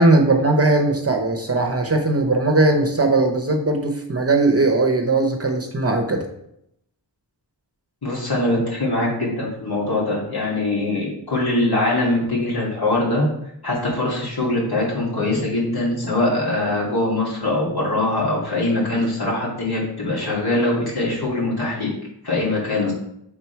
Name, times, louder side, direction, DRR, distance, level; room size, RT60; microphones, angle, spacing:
voice 1, 0.0-6.3, right 2 dB, 35° right, 2 dB, 0.8 m, -19 dB
voice 2, 8.0-13.3 13.6-21.9 22.2-22.9, left 2 dB, 60° left, -4 dB, 2.2 m, -22 dB
5.9 x 3.8 x 4.5 m, 0.77 s
wide cardioid pair, 95°, 44 cm